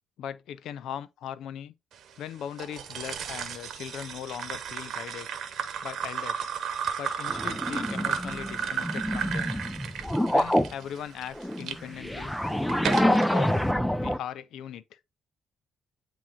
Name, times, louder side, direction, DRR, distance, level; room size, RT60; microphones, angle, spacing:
voice 1, 0.2-1.7 2.2-5.3 5.8-6.5 7.0-9.6 10.3-12.3 12.8-13.6 14.0-15.0, left 9 dB, 80° left, 0.5 m, -39 dB
sound 1, 2.6-11.8 12.3-13.3, right 8 dB, 70° right, 0.9 m, -34 dB
sound 2, 7.3-10.7 11.4-14.2, equal, 5° left, 0.5 m, -27 dB
8.6 x 3.0 x 3.7 m
cardioid pair, 90°, 0 cm